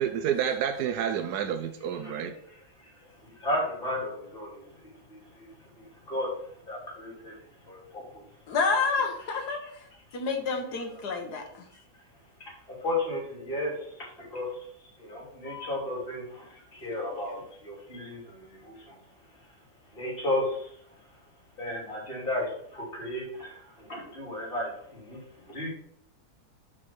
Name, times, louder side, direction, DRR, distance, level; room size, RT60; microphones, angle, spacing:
voice 1, 0.0-2.3, right 8 dB, 90° right, 8 dB, 1.2 m, -29 dB
voice 2, 3.4-5.5 5.8-6.3 6.7-7.3 7.7-8.2 12.8-13.8 14.2-14.5 15.0-18.9 19.9-20.7 21.6-25.2 25.5-25.7, left 1 dB, 35° left, -4 dB, 3.3 m, -34 dB
voice 3, 8.5-9.6 10.1-11.6, left 4 dB, 80° left, 3 dB, 1.9 m, -28 dB
5.9 x 5.0 x 5.9 m, 0.68 s
omnidirectional pair, 1.7 m